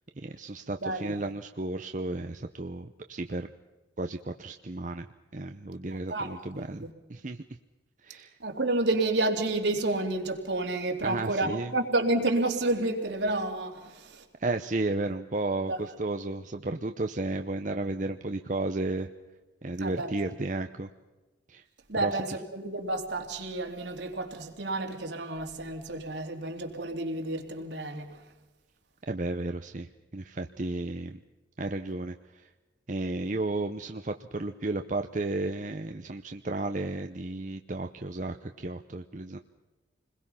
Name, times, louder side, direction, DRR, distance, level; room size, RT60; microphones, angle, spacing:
voice 1, 0.2-3.5 4.0-5.1 5.3-7.4 8.0-8.4 11.0-11.7 14.4-19.1 19.6-20.9 21.5-21.6 22.0-22.2 29.1-31.2 31.6-32.5 32.9-39.4, right 2 dB, 40° right, 0.7 m, -33 dB
voice 2, 0.8-1.1 6.1-6.9 8.4-14.2 15.7-15.8 19.8-20.1 21.9-28.2, right 2 dB, 70° right, 3.0 m, -30 dB
29.0 x 21.0 x 5.7 m
head